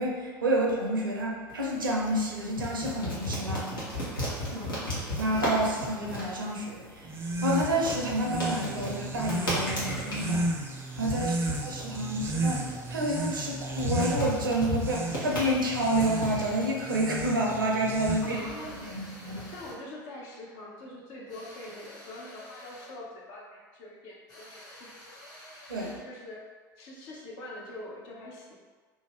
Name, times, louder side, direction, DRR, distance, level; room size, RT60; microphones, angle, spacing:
voice 1, 0.0-3.7 4.5-4.6 5.2-19.4 25.7-25.9, right 1 dB, 85° right, -2 dB, 0.6 m, -29 dB
sound 1, 1.5-19.7, equal, 85° left, 1.0 m, -36 dB
voice 2, 4.5-4.8 11.3-11.5 18.2-18.8 19.5-25.2 25.8-26.5 26.8-28.5, left 1 dB, 60° left, -3 dB, 0.8 m, -44 dB
sound 2, 7.0-18.6, right 2 dB, 20° right, 0.5 m, -34 dB
sound 3, 15.2-16.7 18.2-19.9 21.3-23.0 24.3-26.1, left 1 dB, 35° left, 1.4 m, -49 dB
2.7 x 2.5 x 3.4 m, 1.4 s
hypercardioid pair, 70°, 11 cm